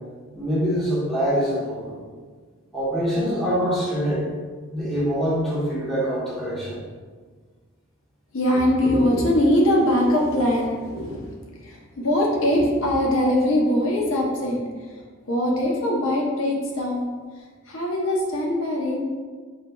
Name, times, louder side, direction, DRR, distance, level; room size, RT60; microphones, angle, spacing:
voice 1, 0.3-2.0 2.7-4.3 4.7-6.8, equal, ahead, -9 dB, 0.9 m, -24 dB
voice 2, 8.3-11.2 11.6-15.0 15.3-17.1 17.7-19.0, left 1 dB, 70° left, -2 dB, 0.7 m, -22 dB
4.4 x 3.2 x 2.2 m, 1.5 s
head